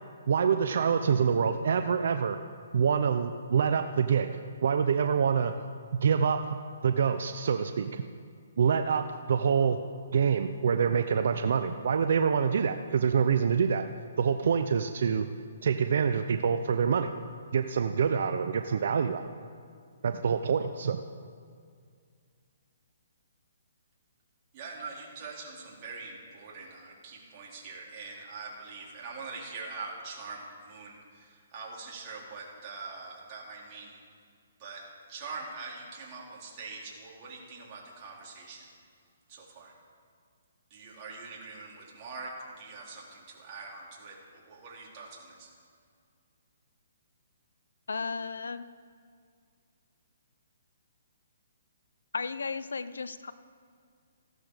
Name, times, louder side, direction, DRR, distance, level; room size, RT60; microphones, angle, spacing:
voice 1, 0.3-2.4 2.7-4.3 4.6-5.5 6.0-6.4 6.8-8.0 8.6-9.0 9.3-9.8 10.1-13.8 14.2-15.3 15.6-17.1 17.5-19.2 20.0-21.0, right 6 dB, 65° right, 8 dB, 0.7 m, -26 dB
voice 2, 24.5-33.9 34.6-34.8 35.1-38.7 39.3-39.7 40.7-42.3 42.6-45.5, right 4 dB, 30° right, -4 dB, 4.2 m, -43 dB
voice 3, 47.9-48.7 52.1-53.3, left 4 dB, 90° left, 14 dB, 0.6 m, -34 dB
16.0 x 12.5 x 5.1 m, 2.2 s
hypercardioid pair, 150°, 0 cm